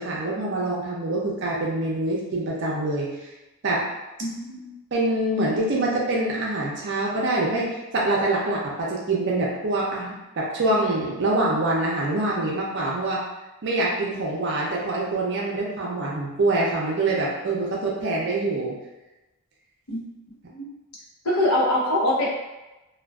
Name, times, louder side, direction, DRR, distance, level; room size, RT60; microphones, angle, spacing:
voice 1, 0.0-3.1 3.6-3.8 4.9-13.2 13.6-18.8, right 2 dB, 50° right, -4 dB, 0.5 m, -25 dB
voice 2, 4.2-4.7 19.9-20.7 21.2-22.4, left 1 dB, 80° left, -5 dB, 0.7 m, -24 dB
2.5 x 2.2 x 2.3 m, 1.0 s
head